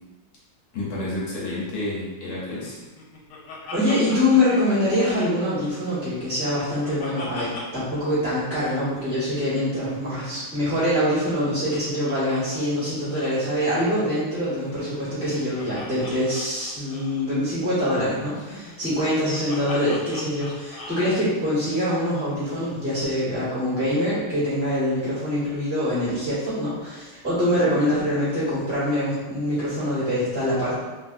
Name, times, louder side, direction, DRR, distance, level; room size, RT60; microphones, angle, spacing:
voice 1, 0.7-2.8, left 1 dB, 65° left, -6 dB, 1.0 m, -30 dB
Laughter, 2.6-5.6 5.9-8.0 8.2-8.3 8.5-8.8 10.0-12.4 12.7-12.8 13.1-13.4 14.5-17.3 18.3-21.1, left 3 dB, 85° left, 1.6 m, -41 dB
voice 2, 3.7-30.8, left 1 dB, 10° left, -12 dB, 0.8 m, -24 dB
3.3 x 2.7 x 2.5 m, 1.2 s
omnidirectional pair, 2.4 m